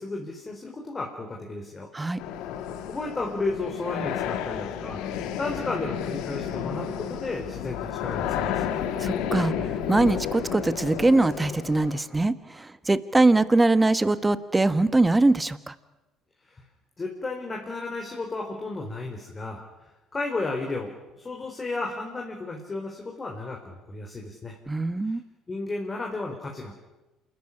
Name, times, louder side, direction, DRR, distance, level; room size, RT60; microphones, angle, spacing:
voice 1, 0.0-1.9 2.9-5.0 5.4-8.8 16.5-16.6 17.0-19.6 20.1-24.6 25.1-25.2 25.5-26.7, left 3 dB, 30° left, 1 dB, 4.2 m, -33 dB
sound 1, 2.2-12.0, left 9 dB, 70° left, 1.9 m, -31 dB
voice 2, 9.0-15.7 24.7-25.2, right 2 dB, 15° right, 14 dB, 1.3 m, -22 dB
28.0 x 13.0 x 10.0 m, 1.0 s
hypercardioid pair, 65°, 0 cm